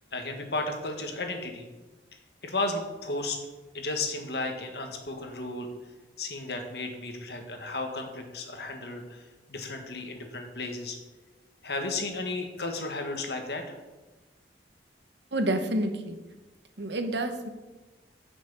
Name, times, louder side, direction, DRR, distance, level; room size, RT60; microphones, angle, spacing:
voice 1, 0.1-1.7 2.4-3.4 3.7-5.7 6.2-11.0 11.6-13.8, left 2 dB, 65° left, 4 dB, 1.8 m, -34 dB
voice 2, 15.3-16.2 16.8-17.5, right 1 dB, 75° right, 6 dB, 1.3 m, -28 dB
10.5 x 6.2 x 7.2 m, 1.2 s
head